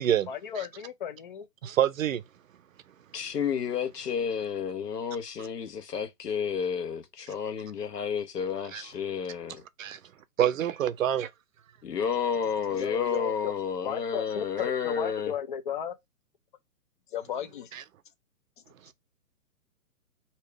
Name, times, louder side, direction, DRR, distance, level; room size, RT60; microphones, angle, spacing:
voice 1, 0.3-1.5 12.7-13.5 13.8-15.9 17.1-17.7, left 9 dB, 35° left, 0.5 m, -34 dB
voice 2, 1.6-2.2 8.7-8.8 9.8-10.0 10.4-11.3 17.7-17.8, right 10 dB, 60° right, 0.6 m, -26 dB
voice 3, 3.1-9.6 11.8-15.3, left 7 dB, 85° left, 1.2 m, -31 dB
3.4 x 2.9 x 4.6 m
hypercardioid pair, 145°, 46 cm